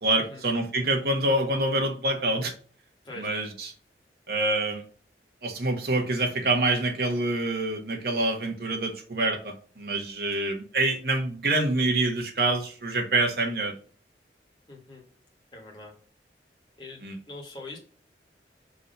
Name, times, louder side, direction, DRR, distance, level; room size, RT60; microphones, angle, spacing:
voice 1, 0.0-2.5 3.2-3.7 4.3-4.8 5.4-13.7 17.0-17.2, right 2 dB, 60° right, 3 dB, 1.3 m, -26 dB
voice 2, 14.7-15.0 15.5-15.9 16.8-17.0 17.3-17.8, left 2 dB, 25° left, 0 dB, 1.7 m, -42 dB
5.4 x 3.3 x 5.3 m, 0.43 s
head